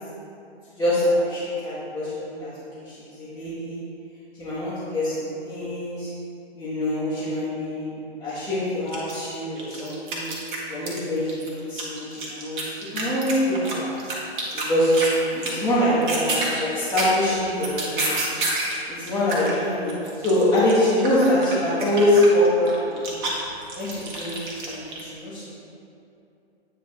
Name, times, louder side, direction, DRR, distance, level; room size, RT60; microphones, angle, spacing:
voice 1, 0.8-2.5 2.8-3.8 4.4-6.1 6.6-7.9 8.2-10.3 10.7-13.9 14.5-15.0 15.3-18.2 18.9-19.9 20.2-23.2 23.7-25.6, left 1 dB, 10° left, -14 dB, 1.3 m, -24 dB
sound 1, 8.5-8.6 8.9-11.0 11.3-15.2 15.4-15.7 15.9-18.8 19.1-25.0, right 2 dB, 50° right, 1.5 m, -29 dB
8.7 x 3.3 x 4.4 m, 2.7 s
figure-of-eight pair, 120°, 31 cm